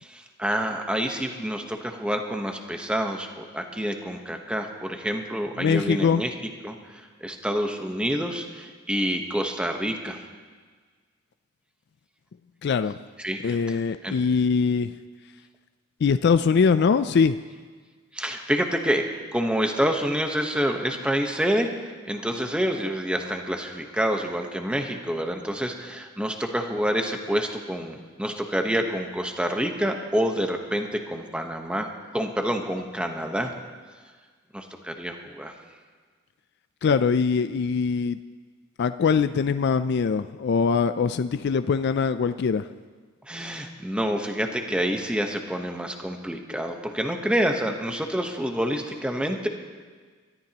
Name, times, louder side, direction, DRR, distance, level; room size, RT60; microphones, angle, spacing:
voice 1, 0.0-6.3 6.6-10.2 13.2-13.8 14.0-14.2 18.1-33.5 34.5-35.5 43.3-49.5, equal, 5° right, 4 dB, 1.1 m, -28 dB
voice 2, 5.6-6.2 12.6-13.0 13.4-14.9 16.0-17.4 36.8-38.2 38.8-42.7, left 5 dB, 55° left, 11 dB, 0.4 m, -22 dB
23.5 x 13.5 x 2.9 m, 1.5 s
head